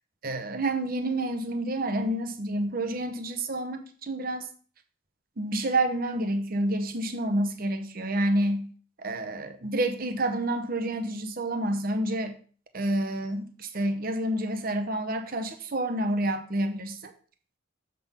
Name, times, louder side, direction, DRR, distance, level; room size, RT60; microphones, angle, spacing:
voice 1, 0.2-4.5 5.4-8.7 9.0-12.4 12.7-17.1, right 1 dB, 40° right, 7 dB, 0.8 m, -29 dB
7.4 x 3.8 x 5.7 m, 0.42 s
head